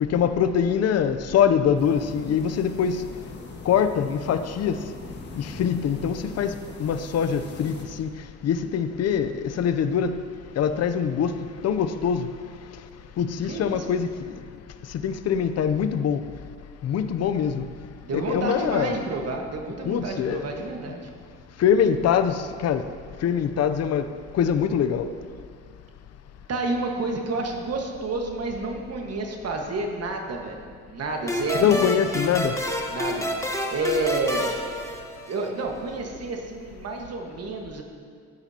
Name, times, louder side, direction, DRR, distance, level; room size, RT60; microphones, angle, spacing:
voice 1, 0.0-3.0 3.7-4.8 5.4-6.5 6.8-8.1 8.4-10.2 10.6-12.3 13.2-14.1 14.9-16.2 16.8-17.6 18.1-19.0 19.8-20.5 21.6-22.8 23.2-24.1 24.3-25.1 31.5-32.6, left 8 dB, 55° left, 10 dB, 0.6 m, -23 dB
sound 1, 1.8-7.8, left 2 dB, 35° left, 1.7 m, -42 dB
voice 2, 13.4-14.0 18.0-21.1 26.5-31.9 32.9-34.5 35.3-37.8, right 2 dB, 55° right, 2 dB, 1.5 m, -30 dB
sound 2, 31.3-35.6, equal, 10° left, 1.1 m, -29 dB
14.5 x 9.0 x 2.9 m, 2.1 s
cardioid pair, 90°, 30 cm